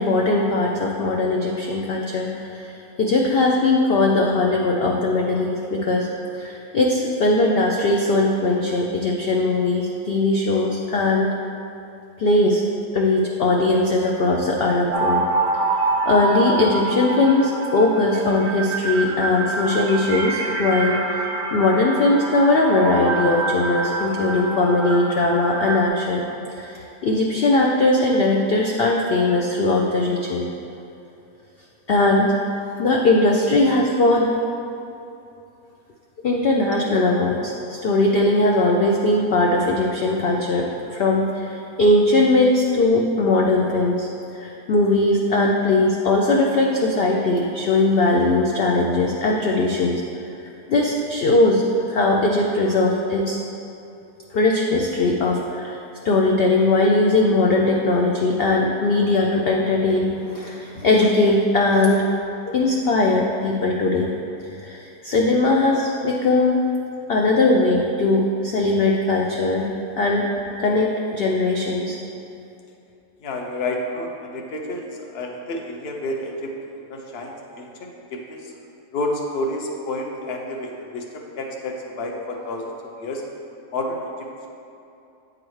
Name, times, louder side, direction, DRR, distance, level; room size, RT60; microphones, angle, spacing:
voice 1, 0.0-2.7 3.0-6.1 6.4-11.3 12.2-12.6 12.9-15.2 16.1-30.4 31.9-32.4 32.8-34.3 36.2-44.1 44.3-50.0 50.7-53.4 54.3-55.8 56.0-62.0 62.5-64.1 64.6-66.6 67.1-69.7 70.0-70.3 70.6-72.0, left 2 dB, 85° left, -1 dB, 0.5 m, -20 dB
sound 1, 14.9-25.9, right 3 dB, 60° right, 0.6 m, -26 dB
voice 2, 73.2-78.5 78.9-82.6 83.0-83.2 83.7-84.1, left 1 dB, 55° left, 1 dB, 0.8 m, -30 dB
8.5 x 4.9 x 3.2 m, 2.8 s
omnidirectional pair, 1.6 m